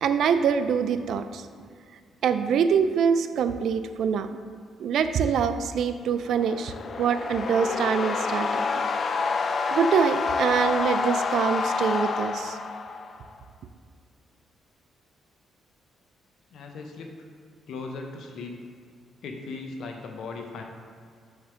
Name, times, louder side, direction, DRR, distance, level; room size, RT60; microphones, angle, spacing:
voice 1, 0.0-1.4 2.2-4.4 4.8-6.7 7.0-8.8 9.7-12.6, right 7 dB, 70° right, 10 dB, 0.4 m, -24 dB
sound 1, 6.2-13.3, left 4 dB, 45° left, 0.4 m, -28 dB
voice 2, 16.5-17.1 17.7-18.6 19.2-20.6, left 3 dB, 70° left, 3 dB, 0.8 m, -37 dB
6.5 x 3.3 x 5.8 m, 2.1 s
cardioid pair, 90°, 0 cm